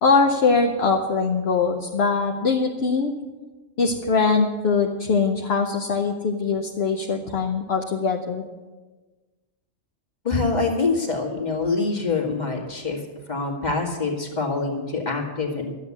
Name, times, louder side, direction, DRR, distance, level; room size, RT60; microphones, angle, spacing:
voice 1, 0.0-3.1 3.8-8.4, left 4 dB, 65° left, 2 dB, 1.2 m, -22 dB
voice 2, 10.2-13.0 13.3-15.7, left 3 dB, 40° left, 0 dB, 2.2 m, -25 dB
12.5 x 8.1 x 8.4 m, 1.3 s
omnidirectional pair, 1.2 m